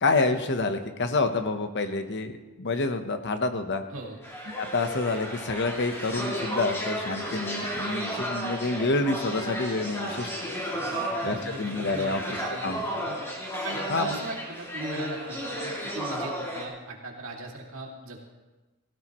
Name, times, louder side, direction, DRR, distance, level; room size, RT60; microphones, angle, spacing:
voice 1, 0.0-2.3 2.6-3.8 4.6-10.3 11.2-12.2 12.6-12.8 13.9-14.2, left 3 dB, 55° left, 8 dB, 1.0 m, -28 dB
sound 1, 4.2-16.6, equal, 10° left, 2.5 m, -33 dB
voice 2, 10.9-13.2 13.6-18.2, right 2 dB, 65° right, -1 dB, 2.4 m, -39 dB
17.0 x 15.5 x 3.1 m, 1.2 s
head